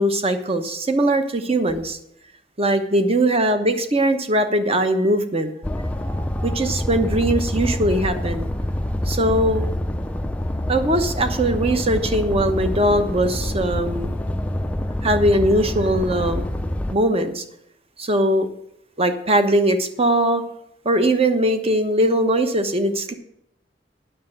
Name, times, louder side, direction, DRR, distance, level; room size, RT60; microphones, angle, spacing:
voice 1, 0.0-2.0 2.6-5.5 6.4-8.4 9.1-9.7 10.7-14.1 15.0-16.4 16.9-17.4 18.0-18.5 19.0-20.4 20.8-23.1, right 1 dB, 35° right, 8 dB, 1.0 m, -20 dB
sound 1, 5.6-17.0, left 1 dB, 5° left, 0.4 m, -26 dB
9.5 x 6.7 x 7.7 m, 0.75 s
head